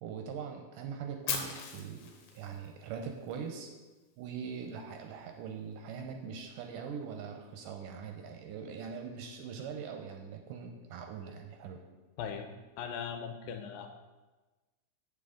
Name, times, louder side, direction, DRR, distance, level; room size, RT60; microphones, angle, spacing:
voice 1, 0.0-3.7 4.2-11.8, right 6 dB, 80° right, 3 dB, 2.0 m, -42 dB
Fire, 1.3-3.3, left 6 dB, 70° left, 2.1 m, -39 dB
voice 2, 12.2-12.5 12.8-14.0, left 7 dB, 85° left, 6 dB, 2.4 m, -39 dB
7.7 x 7.6 x 3.7 m, 1.2 s
omnidirectional pair, 4.1 m